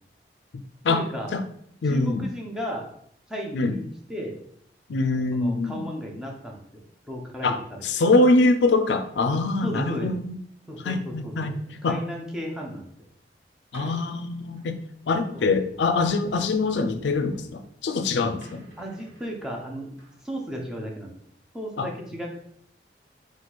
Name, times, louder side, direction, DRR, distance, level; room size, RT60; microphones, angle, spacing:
voice 1, 0.9-1.3 1.8-2.9 3.3-4.4 5.3-7.8 9.6-10.1 10.7-11.5 11.8-12.9 15.3-15.8 18.8-21.1 21.5-22.4, equal, 5° right, -2 dB, 0.7 m, -35 dB
voice 2, 1.8-2.3 3.5-3.8 4.9-5.8 7.4-10.4 10.8-12.0 13.7-14.8 15.1-18.7 21.8-21.9, left 3 dB, 85° left, 9 dB, 0.4 m, -24 dB
sound 1, 13.3-13.4 13.7-15.0 15.7-18.0 18.4-20.2, right 1 dB, 80° right, 1.1 m, -47 dB
4.5 x 2.4 x 4.0 m, 0.67 s
head